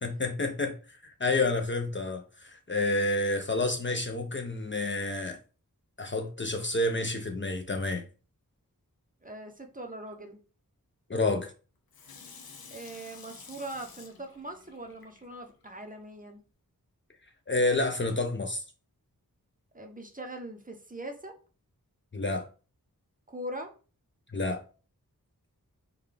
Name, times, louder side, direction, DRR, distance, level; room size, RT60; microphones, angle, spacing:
voice 1, 0.0-0.8 1.0-5.4 6.0-8.1 11.1-11.5 17.5-18.6 22.1-22.5 24.3-24.6, left 2 dB, 35° left, 0.4 m, -29 dB
voice 2, 9.2-10.4 12.7-16.4 19.7-21.3 23.3-23.7, right 1 dB, 25° right, 0.6 m, -41 dB
Water tap faucet / Sink (filling or washing), 11.9-15.7 16.2-16.3, left 5 dB, 85° left, 0.6 m, -50 dB
3.7 x 2.2 x 3.3 m
wide cardioid pair, 65°, 35 cm